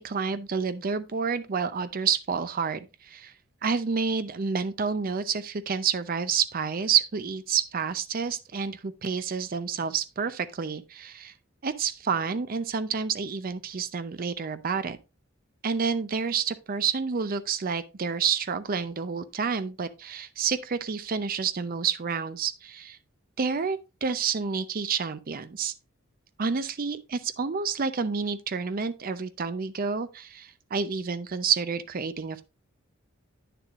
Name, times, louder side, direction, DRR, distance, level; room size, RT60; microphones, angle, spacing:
voice 1, 0.0-3.3 3.6-11.3 11.6-15.0 15.6-23.0 23.4-25.7 26.4-32.4, right 6 dB, 45° right, 0.5 m, -29 dB
9.0 x 6.7 x 2.4 m
head